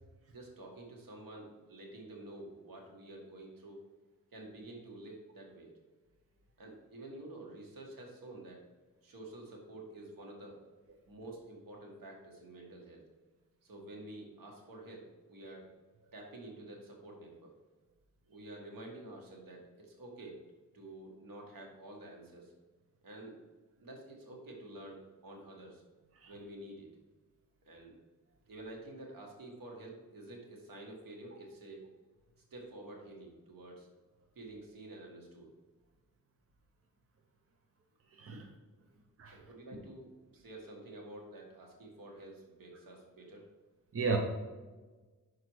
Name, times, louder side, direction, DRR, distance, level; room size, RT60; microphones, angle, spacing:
voice 1, 0.3-3.8 4.3-5.7 6.6-8.6 9.0-10.6 11.1-13.0 13.6-15.7 16.1-17.6 18.3-20.4 20.7-22.5 23.0-23.4 23.8-25.8 26.3-26.9 27.6-27.9 28.5-31.9 32.5-33.9 34.3-35.5 38.3-38.4 38.8-38.9 39.3-40.1 40.3-43.5, right 1 dB, 85° right, 0 dB, 1.7 m, -49 dB
voice 2, 26.2-26.3 38.2-38.3 39.2-39.4 43.9-44.2, right 4 dB, 45° right, 2 dB, 0.8 m, -32 dB
6.1 x 4.7 x 4.7 m, 1.3 s
wide cardioid pair, 130°, 33 cm